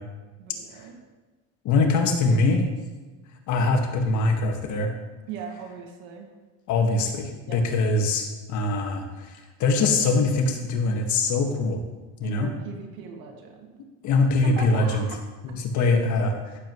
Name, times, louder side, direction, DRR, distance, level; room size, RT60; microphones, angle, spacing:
voice 1, 0.4-1.0 5.3-6.3 7.5-7.6 12.2-13.7 14.4-15.2 15.8-15.9, right 5 dB, 70° right, 2 dB, 2.2 m, -38 dB
voice 2, 1.6-2.6 3.5-4.9 6.7-9.3 9.6-11.8 12.2-12.5 14.0-15.0 15.4-16.3, left 3 dB, 55° left, 3 dB, 1.9 m, -23 dB
15.0 x 7.4 x 3.2 m, 1.3 s
supercardioid pair, 115°, 36 cm